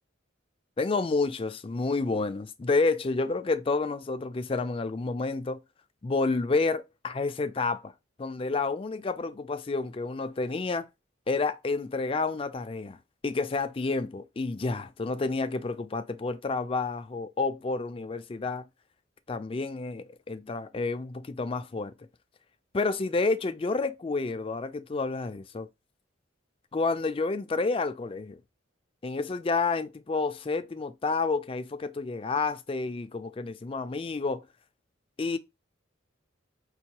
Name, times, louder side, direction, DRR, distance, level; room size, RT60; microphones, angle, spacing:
voice 1, 0.8-5.6 6.0-7.9 8.2-10.9 11.3-18.7 19.3-21.9 22.7-25.7 26.7-28.4 29.0-34.5 35.2-35.4, left 3 dB, 30° left, 0.4 m, -29 dB
5.3 x 2.2 x 2.9 m
head